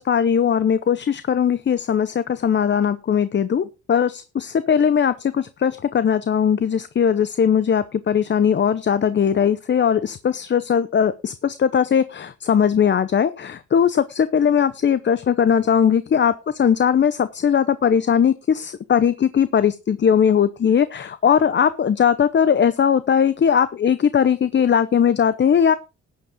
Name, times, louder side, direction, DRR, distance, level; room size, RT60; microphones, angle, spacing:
voice 1, 0.0-25.7, left 7 dB, 35° left, 14 dB, 0.8 m, -19 dB
13.0 x 9.6 x 3.8 m, 0.29 s
cardioid pair, 90°, 30 cm